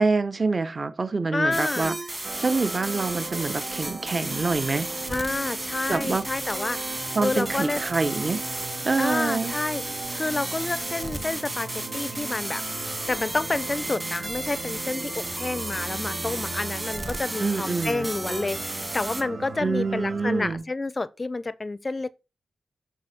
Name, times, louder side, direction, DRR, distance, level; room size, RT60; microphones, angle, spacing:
voice 1, 0.0-1.9 2.4-4.9 5.9-6.3 7.1-8.4 8.8-9.5 17.4-18.1 19.6-20.6, right 3 dB, 30° right, 0.9 m, -26 dB
voice 2, 1.3-2.0 5.1-6.8 7.2-7.8 9.0-9.8 10.1-12.6 13.1-22.1, left 3 dB, 25° left, 0.5 m, -29 dB
sound 1, 1.5-19.2, right 1 dB, 15° right, 1.5 m, -33 dB
sound 2, 2.2-20.5, right 4 dB, 45° right, 1.9 m, -38 dB
7.4 x 6.0 x 5.9 m
wide cardioid pair, 130°, 0 cm